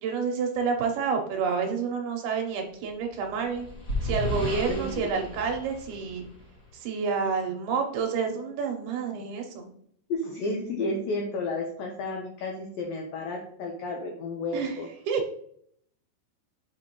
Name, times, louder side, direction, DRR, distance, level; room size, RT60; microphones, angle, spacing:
voice 1, 0.0-3.7 4.0-6.2 6.7-9.7 14.5-14.8 15.1-15.2, right 5 dB, 75° right, 3 dB, 2.5 m, -29 dB
sound 1, 3.1-6.7, left 1 dB, 35° left, 2.2 m, -33 dB
voice 2, 4.7-5.1 10.1-14.9, left 2 dB, 85° left, 1 dB, 2.0 m, -32 dB
6.2 x 6.2 x 3.0 m, 0.65 s
omnidirectional pair, 5.2 m